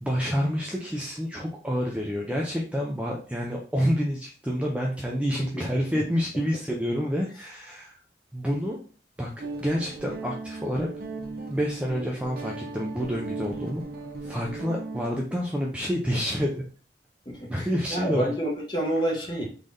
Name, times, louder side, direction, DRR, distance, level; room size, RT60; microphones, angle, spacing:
voice 1, 0.0-8.0 8.3-8.8 9.2-10.9 11.5-13.8 14.2-16.6 17.5-18.3, equal, 5° right, -2 dB, 0.4 m, -28 dB
Guitar, 9.4-15.0, right 3 dB, 50° right, 0.6 m, -37 dB
voice 2, 17.3-19.4, right 1 dB, 25° left, -2 dB, 1.1 m, -29 dB
3.7 x 3.3 x 2.6 m, 0.40 s
head